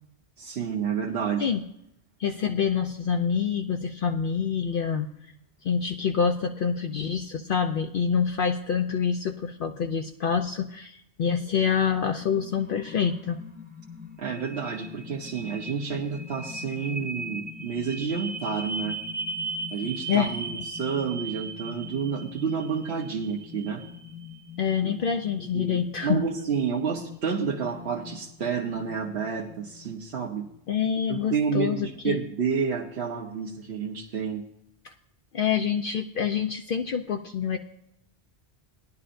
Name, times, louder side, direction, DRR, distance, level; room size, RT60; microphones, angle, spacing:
voice 1, 0.4-1.5 14.2-19.0 19.7-23.8 24.8-24.9 25.5-30.4 31.1-34.4, right 6 dB, 75° right, -1 dB, 1.2 m, -30 dB
voice 2, 2.2-5.1 5.6-13.4 20.1-20.6 24.6-26.2 30.7-32.2 34.8-34.9 35.3-37.6, left 7 dB, 60° left, 5 dB, 0.7 m, -26 dB
sound 1, 12.2-29.9, right 1 dB, 10° right, 0.8 m, -39 dB
18.0 x 11.0 x 2.6 m, 0.78 s
omnidirectional pair, 1.1 m